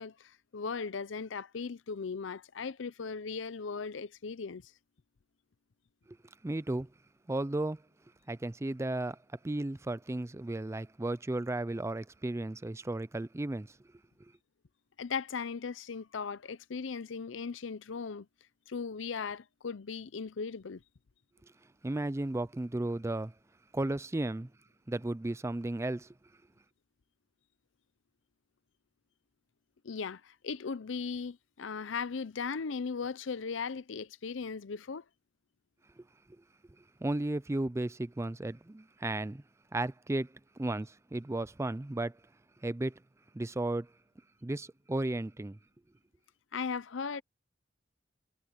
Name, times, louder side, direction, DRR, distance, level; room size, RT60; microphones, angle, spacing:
voice 1, 0.0-4.7 15.0-18.3 18.7-20.8 29.8-35.0 46.5-47.2, left 5 dB, 85° left, 0.6 m, -38 dB
voice 2, 6.4-6.9 7.3-7.8 8.3-13.8 21.8-23.3 23.7-24.5 24.9-26.1 36.0-36.1 37.0-39.4 39.7-40.3 40.6-42.2 42.6-43.0 43.3-43.9 44.4-45.6, right 2 dB, 15° right, 0.4 m, -34 dB
head